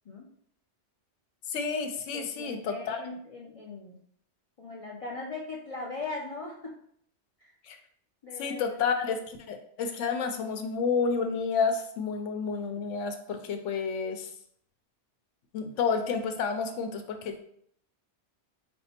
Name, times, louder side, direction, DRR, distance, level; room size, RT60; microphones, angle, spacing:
voice 1, 1.5-3.0 7.6-7.8 8.4-14.3 15.5-17.4, left 5 dB, 85° left, 7 dB, 1.0 m, -30 dB
voice 2, 2.1-4.0 4.6-6.8 7.4-7.6 8.2-8.8, left 3 dB, 50° left, -3 dB, 0.4 m, -39 dB
4.4 x 2.1 x 4.2 m, 0.66 s
omnidirectional pair, 1.2 m